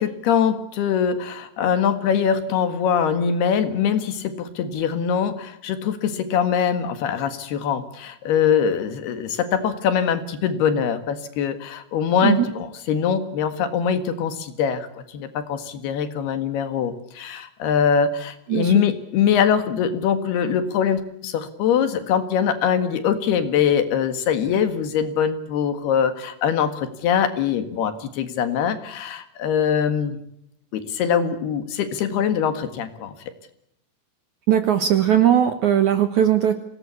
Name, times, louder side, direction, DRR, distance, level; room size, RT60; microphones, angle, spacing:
voice 1, 0.0-30.2 30.7-33.1, left 7 dB, 70° left, 10 dB, 3.6 m, -23 dB
voice 2, 34.5-36.5, right 10 dB, 65° right, 9 dB, 2.1 m, -18 dB
25.5 x 18.0 x 8.4 m, 0.77 s
omnidirectional pair, 5.0 m